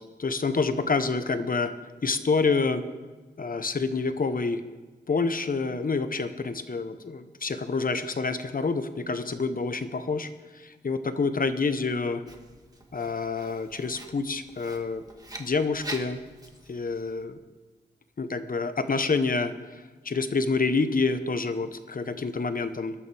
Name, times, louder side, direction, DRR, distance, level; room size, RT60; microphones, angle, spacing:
voice 1, 0.0-1.7 2.0-2.8 3.4-4.6 5.1-12.2 12.9-15.0 15.4-16.2 16.7-17.4 18.2-22.9, left 4 dB, 50° left, 10 dB, 1.0 m, -28 dB
Writing, 12.3-17.2, right 1 dB, 20° right, 1.8 m, -44 dB
21.0 x 12.0 x 3.5 m, 1.3 s
cardioid pair, 65°, 18 cm